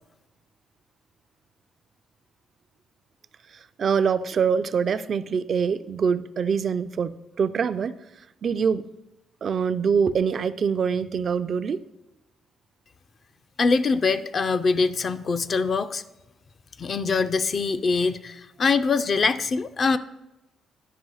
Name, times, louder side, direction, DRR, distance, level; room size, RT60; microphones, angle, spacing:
voice 1, 3.8-8.0 8.4-8.9 9.4-11.8, right 6 dB, 50° right, 14 dB, 0.3 m, -24 dB
voice 2, 13.6-16.0 16.8-20.0, left 4 dB, 45° left, 11 dB, 0.4 m, -23 dB
11.0 x 4.8 x 3.9 m, 0.95 s
cardioid pair, 90°, 0 cm